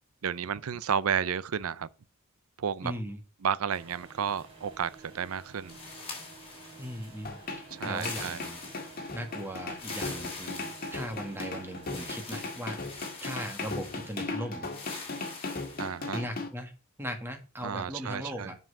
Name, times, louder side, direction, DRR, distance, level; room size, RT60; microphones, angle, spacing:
voice 1, 0.2-1.9 2.6-2.9 3.4-5.8 7.7-8.4 15.8-16.2 17.6-18.5, right 7 dB, 80° right, 0.5 m, -32 dB
voice 2, 2.8-3.2 6.8-7.4 7.8-8.6 9.1-14.7 16.1-16.7 17.0-18.5, equal, 10° right, 1.6 m, -38 dB
sound 1, 3.7-12.4, right 3 dB, 30° right, 4.1 m, -52 dB
sound 2, 5.7-7.2 7.8-9.2 9.7-11.4 11.9-14.2 14.7-15.9, left 4 dB, 30° left, 2.6 m, -44 dB
sound 3, 7.2-16.5, left 3 dB, 45° left, 1.7 m, -37 dB
7.4 x 5.6 x 6.4 m
head